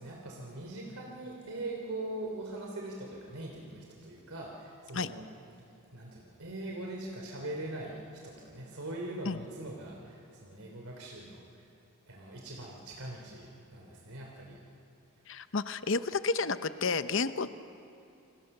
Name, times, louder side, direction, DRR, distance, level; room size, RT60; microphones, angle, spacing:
voice 1, 0.0-5.2 5.9-11.6 12.1-14.6, right 2 dB, 85° right, -1 dB, 3.2 m, -42 dB
voice 2, 15.3-17.5, left 4 dB, 60° left, 12 dB, 0.8 m, -31 dB
29.0 x 26.0 x 6.7 m, 2.8 s
head